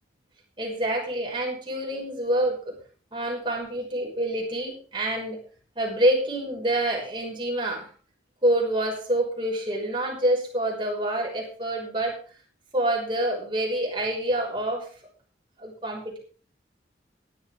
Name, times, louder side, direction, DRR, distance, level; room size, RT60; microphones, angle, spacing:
voice 1, 0.6-2.7 3.1-5.4 5.8-7.9 8.4-12.2 12.7-14.9 15.6-16.2, right 1 dB, 25° right, -1 dB, 5.9 m, -27 dB
16.5 x 12.0 x 3.8 m, 0.40 s
head